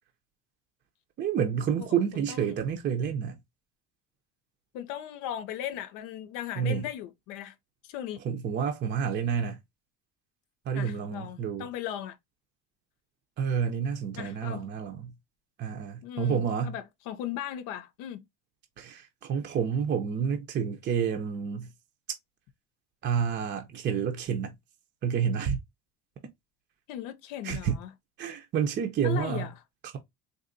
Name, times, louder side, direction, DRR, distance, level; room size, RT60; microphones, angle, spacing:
voice 1, 1.2-3.4 6.6-6.9 8.2-9.6 10.7-11.7 13.4-15.1 15.6-16.7 18.8-21.7 23.0-24.5 25.0-25.6 27.4-27.7 28.2-29.5, right 7 dB, 35° right, 0.6 m, -29 dB
voice 2, 1.7-2.6 4.7-7.5 7.8-8.2 10.7-12.2 14.2-14.7 16.0-18.3 26.9-27.9 29.0-29.5, left 11 dB, 75° left, 0.7 m, -37 dB
3.9 x 2.8 x 2.6 m
cardioid pair, 130°, 32 cm